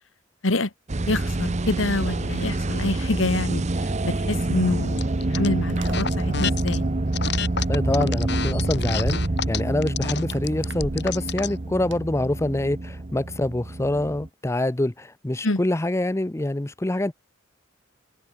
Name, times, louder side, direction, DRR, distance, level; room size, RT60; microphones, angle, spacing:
sound 1, 0.9-14.3, right 2 dB, 35° right, 0.8 m, -27 dB
voice 1, 1.1-5.0 5.3-6.9 15.4-15.6, left 2 dB, 85° left, 1.8 m, -26 dB
sound 2, 4.7-12.0, right 1 dB, 65° right, 7.6 m, -42 dB
sound 3, 5.0-5.5 5.8-6.8 7.1-11.6, left 6 dB, 60° left, 4.0 m, -30 dB
voice 2, 7.7-9.2 9.5-17.1, left 1 dB, 15° left, 0.6 m, -25 dB
head